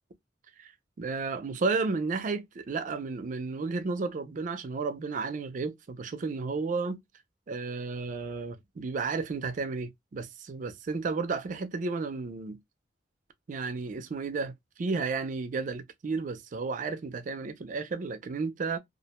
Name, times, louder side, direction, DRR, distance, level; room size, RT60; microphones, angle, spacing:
voice 1, 1.0-7.0 7.5-12.6 13.5-18.8, right 4 dB, 45° right, 0.4 m, -32 dB
2.4 x 2.1 x 2.8 m
head